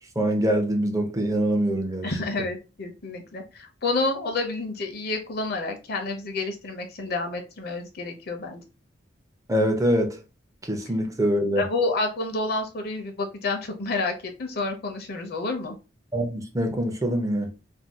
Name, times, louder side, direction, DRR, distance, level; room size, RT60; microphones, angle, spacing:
voice 1, 0.2-2.1 9.5-10.2 10.6-11.6 16.1-17.5, equal, 20° right, 0.6 m, -24 dB
voice 2, 2.0-8.6 11.6-14.1 14.4-15.8, left 3 dB, 55° left, 0.7 m, -29 dB
2.7 x 2.3 x 3.4 m
head